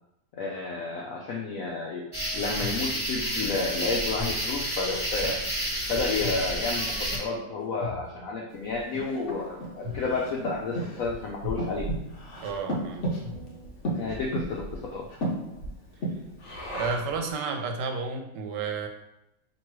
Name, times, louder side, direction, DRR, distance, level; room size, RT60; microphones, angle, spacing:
voice 1, 0.4-2.1 2.3-5.4 5.9-11.8 14.0-15.1, left 3 dB, 80° left, -2 dB, 0.7 m, -31 dB
sound 1, 2.1-7.2, equal, 15° right, 1.3 m, -30 dB
sound 2, 2.1-13.7, left 2 dB, 55° right, 1.2 m, -43 dB
Breathing, 8.7-17.2, right 1 dB, 55° left, 0.9 m, -34 dB
voice 2, 12.4-13.1 16.7-18.9, right 4 dB, 75° right, 4 dB, 1.2 m, -31 dB
3.0 x 2.9 x 4.5 m, 0.83 s
omnidirectional pair, 2.0 m